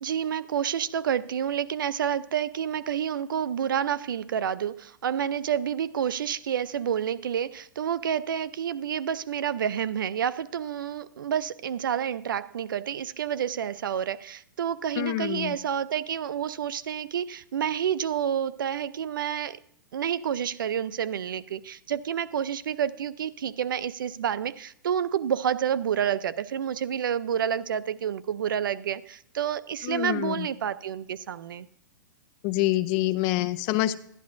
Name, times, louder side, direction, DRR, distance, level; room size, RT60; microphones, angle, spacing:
voice 1, 0.0-19.6 19.9-31.7, right 9 dB, 85° right, 0.5 m, -29 dB
voice 2, 15.0-15.5 29.8-30.5 32.4-34.0, left 16 dB, 35° left, 0.5 m, -26 dB
11.5 x 11.5 x 2.6 m
hypercardioid pair, 150°, 11 cm